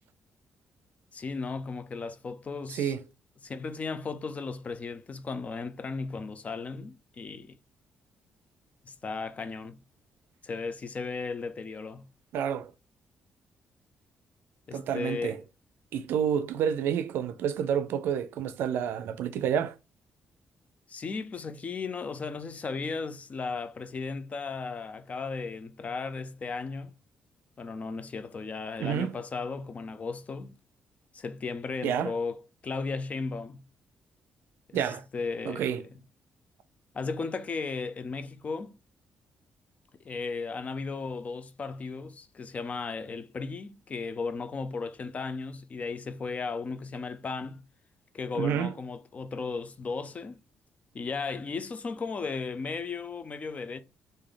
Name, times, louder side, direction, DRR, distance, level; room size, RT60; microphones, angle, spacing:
voice 1, 1.1-2.9 3.4-7.6 8.8-9.8 10.4-12.1 14.7-15.4 20.9-26.9 27.6-30.5 31.1-32.4 32.6-33.6 34.7-35.9 36.9-38.7 40.0-47.6 48.1-50.4 50.9-53.8, left 4 dB, 40° left, 0.6 m, -35 dB
voice 2, 2.7-3.0 12.3-12.7 14.7-15.4 15.9-19.8 28.8-29.1 31.8-32.1 34.7-35.0 35.5-35.8 48.4-48.7, right 8 dB, 85° right, 0.4 m, -29 dB
3.2 x 2.6 x 3.8 m
cardioid pair, 95°, 4 cm